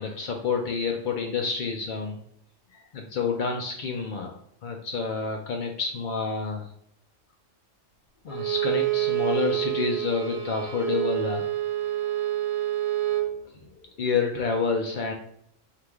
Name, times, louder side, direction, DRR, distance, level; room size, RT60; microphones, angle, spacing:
voice 1, 0.0-2.2 2.9-4.3 4.6-6.7 8.2-11.4 14.0-15.1, left 5 dB, 70° left, 2 dB, 0.4 m, -28 dB
Bowed string instrument, 8.3-13.3, right 14 dB, 75° right, 1.3 m, -27 dB
4.6 x 2.5 x 3.4 m, 0.67 s
omnidirectional pair, 1.4 m